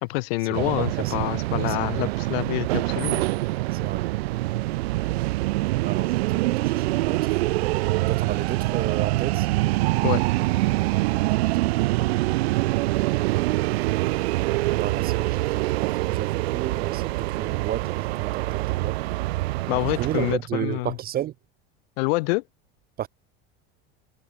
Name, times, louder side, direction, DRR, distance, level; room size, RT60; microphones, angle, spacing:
voice 1, 0.0-3.2 10.0-10.2 19.7-21.0 22.0-22.4, left 25 dB, 75° left, 1.4 m, -26 dB
sound 1, 0.5-20.4, right 19 dB, 85° right, 0.8 m, -25 dB
voice 2, 0.6-1.3 1.6-2.0 3.7-4.1 5.8-7.3 8.1-9.5 11.5-11.7 14.8-19.0 20.0-21.3 23.0-23.1, right 12 dB, 30° right, 0.5 m, -32 dB
supercardioid pair, 105°, 31 cm